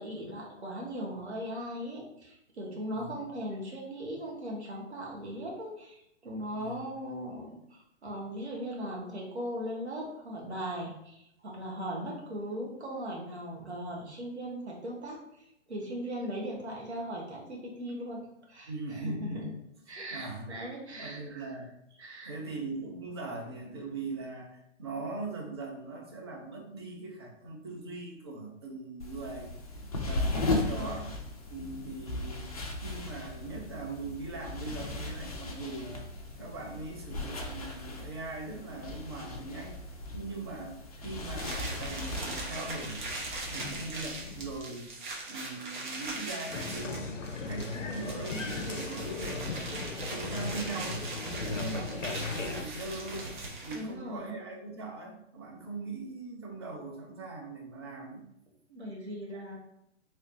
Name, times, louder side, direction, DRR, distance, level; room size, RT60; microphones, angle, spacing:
voice 1, 0.0-18.2 18.5-19.5 19.9-21.6 22.0-22.3 30.4-31.0 51.5-52.0 53.7-54.4 58.7-59.6, equal, 60° right, -3 dB, 1.4 m, -39 dB
voice 2, 18.7-19.5 20.1-20.5 20.9-22.0 22.2-29.5 30.0-31.0 31.5-32.5 32.8-36.1 36.4-39.8 40.1-40.8 41.0-43.1 43.5-44.9 45.3-47.1 47.5-49.8 50.1-53.3 53.6-58.2, right 3 dB, 20° right, 0 dB, 0.5 m, -40 dB
sound 1, 29.0-44.6, left 2 dB, 30° left, 0.5 m, -37 dB
sound 2, 41.4-53.9, right 2 dB, 40° right, 1.0 m, -40 dB
Applause, 46.5-52.7, left 4 dB, 75° left, 0.6 m, -37 dB
4.5 x 3.1 x 2.7 m, 0.77 s
figure-of-eight pair, 130°, 38 cm